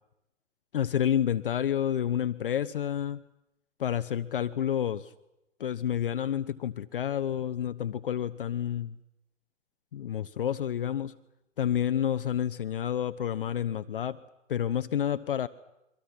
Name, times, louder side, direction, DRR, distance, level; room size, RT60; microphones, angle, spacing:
voice 1, 0.7-3.2 3.8-5.1 5.6-9.0 9.9-11.1 11.6-14.2 14.5-15.5, left 10 dB, 45° left, 12 dB, 0.8 m, -29 dB
28.5 x 24.0 x 5.9 m, 0.92 s
figure-of-eight pair, 125°, 38 cm